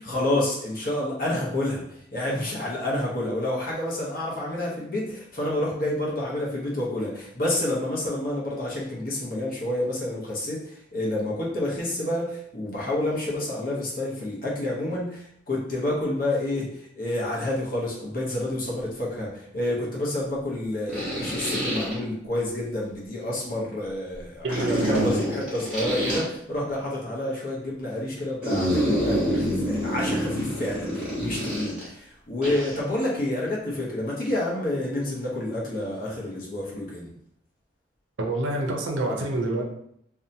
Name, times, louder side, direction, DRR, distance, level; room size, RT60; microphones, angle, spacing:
voice 1, 0.0-37.1, left 1 dB, 45° left, -4 dB, 0.7 m, -29 dB
sound 1, 18.3-18.4 20.9-21.9 24.5-26.2 28.4-31.9 32.4-32.8, equal, 5° right, 0.9 m, -27 dB
voice 2, 24.4-25.1 38.2-39.6, right 2 dB, 75° right, 1 dB, 0.5 m, -26 dB
2.7 x 2.2 x 2.6 m, 0.72 s
head